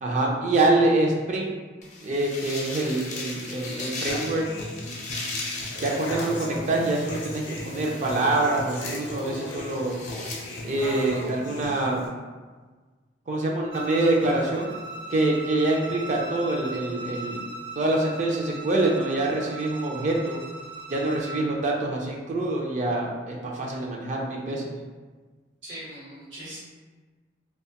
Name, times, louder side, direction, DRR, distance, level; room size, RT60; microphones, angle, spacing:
voice 1, 0.0-1.5 2.0-4.4 5.8-9.9 10.6-12.1 13.3-14.7 15.1-20.4 20.9-24.7, right 2 dB, 40° right, -1 dB, 0.4 m, -25 dB
sound 1, 1.8-11.3, left 3 dB, 40° left, 0.5 m, -38 dB
Human voice / Acoustic guitar, 4.1-12.1, left 1 dB, 90° left, 0.5 m, -36 dB
Bowed string instrument, 13.7-21.5, right 2 dB, 60° right, 0.8 m, -39 dB
voice 2, 25.6-26.6, right 1 dB, 85° right, -9 dB, 1.0 m, -40 dB
2.5 x 2.2 x 2.8 m, 1.4 s
head